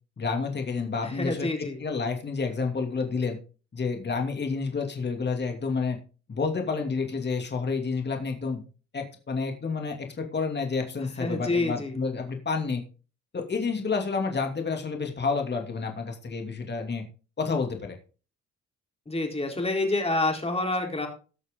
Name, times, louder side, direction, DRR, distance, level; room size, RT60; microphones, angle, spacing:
voice 1, 0.2-1.5 1.8-3.4 3.7-6.0 6.3-8.6 8.9-12.8 13.3-17.0 17.4-18.0, left 4 dB, 35° left, 3 dB, 2.7 m, -29 dB
voice 2, 1.0-1.8 11.2-12.0 19.1-21.1, left 2 dB, 20° left, 2 dB, 4.0 m, -28 dB
18.5 x 6.5 x 3.8 m, 0.36 s
cardioid pair, 90°, 30 cm